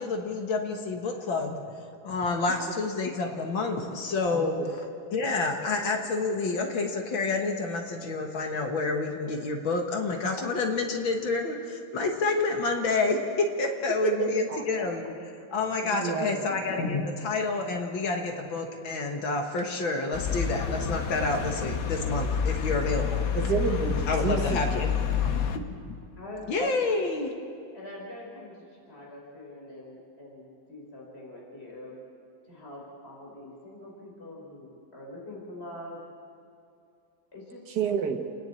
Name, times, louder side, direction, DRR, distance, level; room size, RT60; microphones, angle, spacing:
voice 1, 0.0-1.6 2.0-4.6 5.1-23.3 24.1-26.0 26.5-27.3, left 3 dB, 80° left, 3 dB, 2.2 m, -29 dB
voice 2, 16.0-16.5 23.4-24.7 37.8-38.2, right 6 dB, 60° right, 2 dB, 1.9 m, -29 dB
sound 1, 20.1-25.6, left 7 dB, 55° left, 1.2 m, -29 dB
voice 3, 26.2-27.2 27.7-31.9 32.4-36.0 37.3-37.6, left 1 dB, 30° left, -3 dB, 4.5 m, -44 dB
29.0 x 10.5 x 8.5 m, 2.4 s
omnidirectional pair, 2.1 m